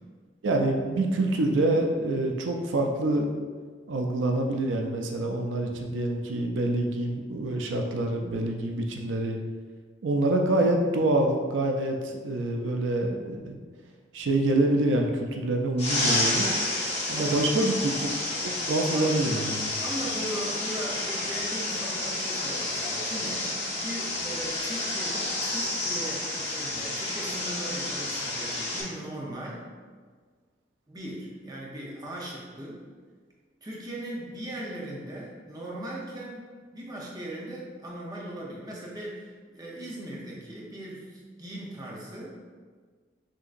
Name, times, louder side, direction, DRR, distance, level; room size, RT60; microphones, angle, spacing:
voice 1, 0.4-3.4 3.9-9.4 10.0-13.6 14.1-16.5 17.1-17.9 18.4-19.7, right 2 dB, 90° right, 2 dB, 0.5 m, -26 dB
sound 1, 15.8-28.8, left 2 dB, 30° left, 0.8 m, -30 dB
voice 2, 17.1-17.8 18.9-19.2 19.8-29.7 30.9-32.8 33.6-39.2 39.5-42.3, right 1 dB, 20° right, -4 dB, 0.7 m, -38 dB
6.2 x 2.9 x 2.5 m, 1.5 s
head